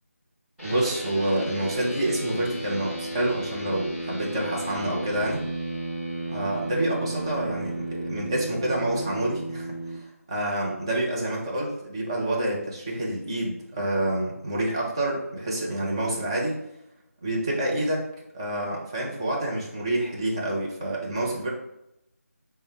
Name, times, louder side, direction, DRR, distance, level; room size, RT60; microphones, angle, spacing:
sound 1, 0.6-10.0, right 1 dB, ahead, 1.0 m, -33 dB
voice 1, 0.6-5.4 6.3-16.6 17.2-18.1 18.3-21.5, right 1 dB, 20° right, -3 dB, 0.6 m, -28 dB
5.2 x 2.2 x 3.3 m, 0.84 s
figure-of-eight pair, 160°, 8 cm